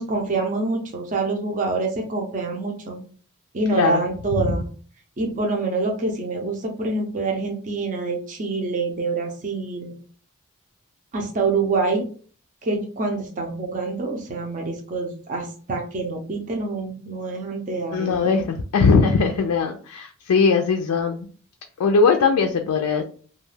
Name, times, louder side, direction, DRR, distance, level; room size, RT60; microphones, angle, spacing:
voice 1, 0.0-3.0 3.5-4.7 5.2-9.9 11.1-12.0 12.6-18.4, right 3 dB, 35° right, 1 dB, 0.5 m, -26 dB
voice 2, 17.9-21.3 21.8-23.0, left 4 dB, 85° left, 4 dB, 0.4 m, -20 dB
2.3 x 2.2 x 3.2 m, 0.42 s
head